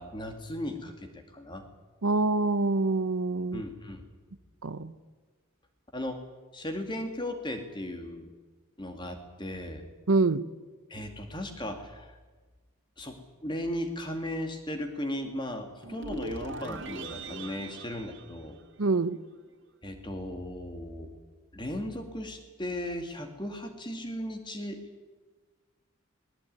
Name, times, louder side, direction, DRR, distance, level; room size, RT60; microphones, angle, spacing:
voice 1, 0.0-1.7 3.5-4.0 5.9-6.2 6.5-8.3 8.8-9.8 10.9-12.2 13.0-18.6 19.8-21.1 21.5-24.8, left 1 dB, 20° left, 5 dB, 2.3 m, -36 dB
voice 2, 2.0-3.6 4.6-4.9 10.1-10.4 18.8-19.2, right 3 dB, 75° right, 15 dB, 0.8 m, -25 dB
sound 1, 15.8-19.1, right 2 dB, 55° right, 2.4 m, -40 dB
19.5 x 17.5 x 9.5 m, 1.4 s
head